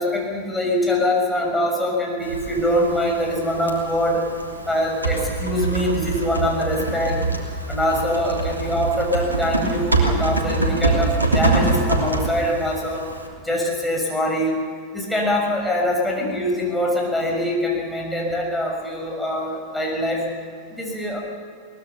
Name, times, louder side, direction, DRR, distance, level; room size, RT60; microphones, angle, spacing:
voice 1, 0.0-4.3 4.7-7.2 7.7-13.0 13.4-14.5 14.9-20.3 20.7-21.2, left 1 dB, 5° left, -1 dB, 6.5 m, -23 dB
Typing, 2.2-13.3, right 3 dB, 80° right, 3.0 m, -25 dB
22.0 x 19.5 x 7.0 m, 2.2 s
figure-of-eight pair, 90°, 0 cm